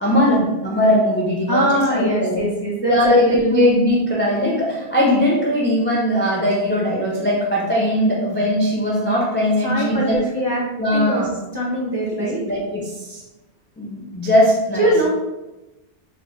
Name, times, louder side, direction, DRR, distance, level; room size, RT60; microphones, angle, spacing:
voice 1, 0.0-1.6 1.9-2.4 2.9-10.2 10.8-11.3 12.2-13.2 13.8-15.1, equal, 15° left, -4 dB, 0.3 m, -19 dB
voice 2, 1.5-3.5 9.6-10.6 10.9-11.2 11.5-12.4 14.8-15.1, right 1 dB, 30° right, -5 dB, 0.6 m, -21 dB
3.9 x 2.0 x 3.2 m, 1.0 s
omnidirectional pair, 1.1 m